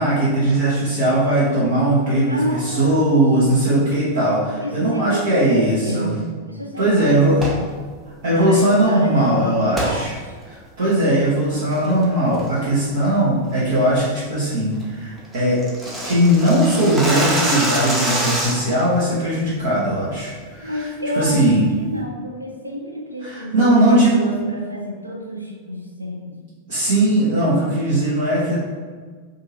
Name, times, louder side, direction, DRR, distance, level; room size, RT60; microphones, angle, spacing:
voice 1, 0.0-6.1 6.8-7.4 8.2-10.1 10.4-15.6 16.0-20.9 21.1-21.6 23.2-24.3 26.7-28.6, right 1 dB, 60° right, -10 dB, 0.8 m, -19 dB
voice 2, 2.3-3.1 4.6-7.7 8.3-10.4 20.6-26.4, equal, 85° right, 0 dB, 0.5 m, -29 dB
sound 1, 7.3-7.7 9.7-10.0 10.4-10.5 11.1-11.3 11.7-12.0 12.4-12.7 13.0-13.1 13.5-13.8 14.1-14.2 14.5-14.6 14.8-14.9 15.2-18.8, right 1 dB, 15° right, 0.7 m, -24 dB
2.7 x 2.5 x 2.8 m, 1.5 s
figure-of-eight pair, 90°, 0 cm